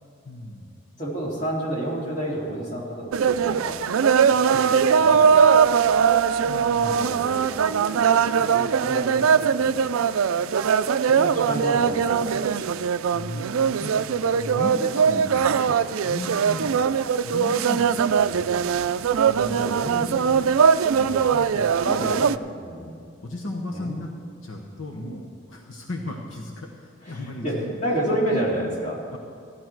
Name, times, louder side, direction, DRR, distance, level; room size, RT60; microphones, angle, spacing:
voice 1, 0.2-0.7 6.5-7.3 13.1-16.8 17.1-22.3 23.2-24.1 24.4-28.3 29.1-29.2, left 1 dB, 75° left, 0 dB, 1.2 m, -36 dB
voice 2, 1.0-3.8 4.3-9.9 11.0-12.8 19.5-20.5 21.8-22.3 22.5-23.0 23.7-24.0 27.0-29.2, right 1 dB, 35° left, -5 dB, 3.0 m, -31 dB
sound 1, 3.1-22.4, right 6 dB, 85° right, 0.4 m, -21 dB
15.5 x 11.5 x 4.6 m, 2.4 s
head